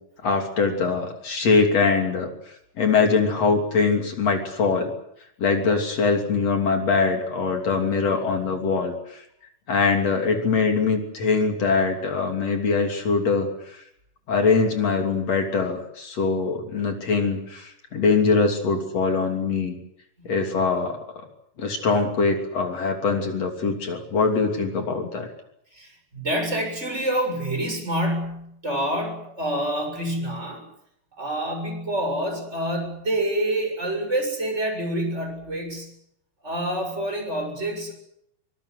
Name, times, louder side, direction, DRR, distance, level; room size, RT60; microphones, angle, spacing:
voice 1, 0.2-2.3 2.8-4.9 5.4-9.2 9.7-13.5 14.3-19.8 20.3-21.3 21.6-25.3, left 4 dB, 50° left, 4 dB, 4.0 m, -22 dB
voice 2, 25.7-30.6 31.2-35.9 36.4-37.9, right 1 dB, 20° right, 3 dB, 7.3 m, -27 dB
25.0 x 20.5 x 8.0 m, 0.75 s
omnidirectional pair, 3.9 m